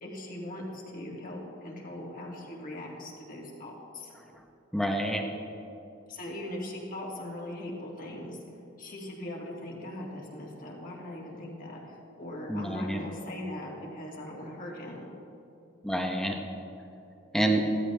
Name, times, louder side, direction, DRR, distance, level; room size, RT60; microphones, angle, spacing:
voice 1, 0.0-4.1 6.1-8.4 8.8-15.1, left 1 dB, 45° left, -2 dB, 2.3 m, -40 dB
voice 2, 4.7-5.2 12.5-13.0 15.8-16.4 17.3-17.6, right 1 dB, 5° left, 1 dB, 1.0 m, -27 dB
16.0 x 13.0 x 3.4 m, 2.6 s
head